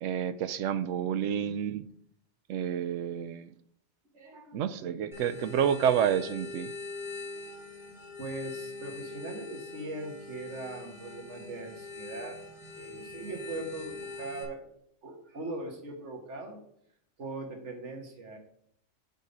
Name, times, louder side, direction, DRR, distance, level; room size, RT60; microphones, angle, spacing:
voice 1, 0.0-1.8 2.5-3.5 4.5-6.7, right 8 dB, 85° right, 13 dB, 1.0 m, -29 dB
voice 2, 4.1-4.7 7.2-7.6 8.2-12.4 12.8-14.7 15.0-16.6 17.2-18.4, right 2 dB, 70° right, 2 dB, 1.8 m, -40 dB
sound 1, 5.1-14.4, left 3 dB, ahead, 3.9 m, -43 dB
8.4 x 5.7 x 5.2 m, 0.70 s
omnidirectional pair, 1.3 m